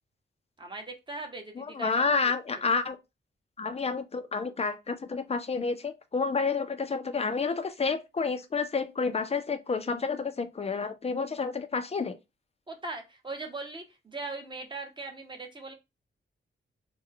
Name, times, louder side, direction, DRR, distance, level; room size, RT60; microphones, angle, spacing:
voice 1, 0.6-1.9 2.2-2.3 12.7-15.7, right 3 dB, 20° right, 0.8 m, -39 dB
voice 2, 1.6-3.0 3.6-12.2, left 4 dB, 30° left, 0.4 m, -30 dB
3.2 x 2.2 x 3.7 m
wide cardioid pair, 135°, 21 cm